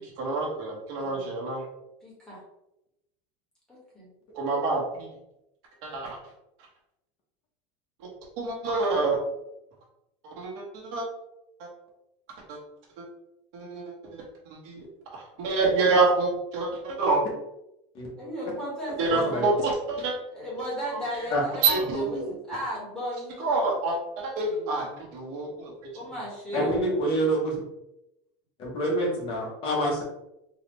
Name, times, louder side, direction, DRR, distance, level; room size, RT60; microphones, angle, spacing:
voice 1, 0.2-1.6 4.3-5.1 5.8-6.2 8.4-9.2 10.2-11.1 11.6-11.7 12.5-12.6 13.0-13.1 13.5-14.2 14.6-14.8 15.1-17.2 19.0-20.1 21.6-22.3 23.4-25.7, right 3 dB, 65° right, -2 dB, 1.2 m, -27 dB
voice 2, 1.0-1.4 2.0-2.4 3.7-4.1 18.2-19.5 20.3-23.5 24.4-25.1 25.9-26.9, equal, 5° left, -7 dB, 1.4 m, -35 dB
voice 3, 19.1-19.6 21.3-21.4 26.5-27.5 28.6-30.0, right 1 dB, 35° left, -3 dB, 1.0 m, -27 dB
4.0 x 2.4 x 3.1 m, 0.86 s
cardioid pair, 170°, 16 cm